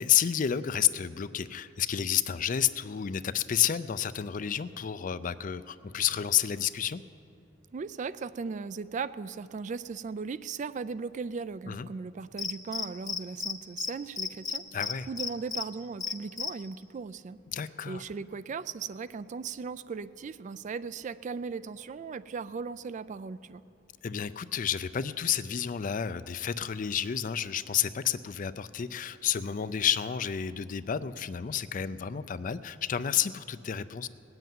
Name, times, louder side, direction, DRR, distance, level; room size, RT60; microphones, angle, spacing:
voice 1, 0.0-7.0 11.7-11.9 14.7-15.1 17.5-18.0 24.0-34.1, left 9 dB, 45° left, 14 dB, 0.4 m, -30 dB
voice 2, 7.7-14.6 15.1-17.4 17.9-23.6, right 5 dB, 40° right, 16 dB, 0.3 m, -37 dB
Cricket, 12.4-13.5 13.8-13.9 14.2-15.6 16.0-16.5, left 5 dB, 20° left, 0.8 m, -32 dB
18.5 x 7.9 x 9.2 m, 2.6 s
head